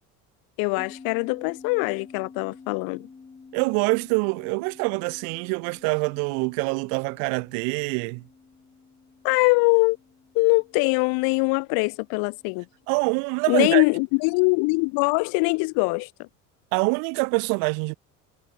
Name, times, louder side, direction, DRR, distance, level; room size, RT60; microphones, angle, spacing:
voice 1, 0.6-3.1 9.2-10.0 10.3-12.7 13.5-16.3, left 31 dB, 75° left, 0.8 m, -22 dB
sound 1, 0.8-13.5, left 4 dB, 15° left, 6.0 m, -50 dB
voice 2, 3.5-8.2 12.9-13.8 16.7-18.0, right 37 dB, 85° right, 3.3 m, -25 dB
cardioid pair, 155°, 36 cm